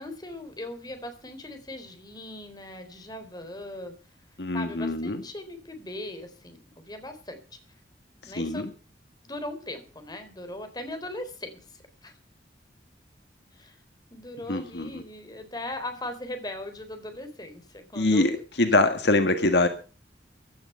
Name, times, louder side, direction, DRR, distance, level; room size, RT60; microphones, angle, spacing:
voice 1, 0.0-3.9 4.5-7.6 8.2-8.7 9.2-12.1 13.5-13.8 14.1-18.4, left 1 dB, 20° left, 8 dB, 3.9 m, -39 dB
voice 2, 4.4-5.2 8.4-8.7 14.5-15.0 18.0-18.3 18.6-19.7, left 2 dB, 70° left, 8 dB, 1.8 m, -23 dB
16.5 x 12.0 x 5.6 m, 0.36 s
head